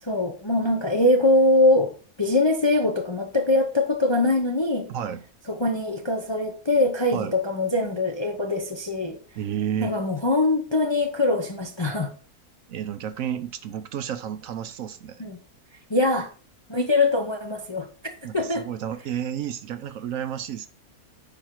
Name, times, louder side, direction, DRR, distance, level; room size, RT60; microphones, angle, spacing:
voice 1, 0.0-4.9 5.5-9.2 9.8-12.1 15.2-15.4 15.9-16.3 16.7-17.9 18.3-18.7, left 2 dB, 30° left, 0.5 m, -23 dB
voice 2, 4.9-5.2 7.1-7.3 9.4-9.9 12.7-15.2 18.2-20.7, right 9 dB, 70° right, 0.9 m, -31 dB
8.9 x 5.0 x 4.6 m
omnidirectional pair, 1.6 m